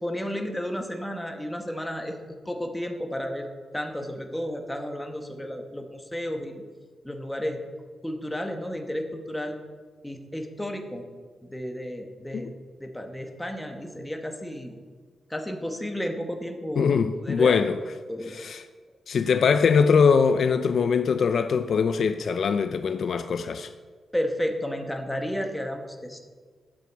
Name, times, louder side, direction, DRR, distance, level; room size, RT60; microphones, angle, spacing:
voice 1, 0.0-2.2 2.5-3.5 3.7-6.6 7.0-7.6 8.0-9.6 10.0-11.1 11.4-12.5 12.8-14.8 15.3-16.9 17.2-17.6 18.1-18.3 24.1-26.2, equal, 5° left, 1.1 m, -32 dB
voice 2, 16.8-17.8 18.3-18.6 19.1-23.7, left 6 dB, 50° left, 0.4 m, -22 dB
12.5 x 8.6 x 4.6 m
wide cardioid pair, 170°, 0 cm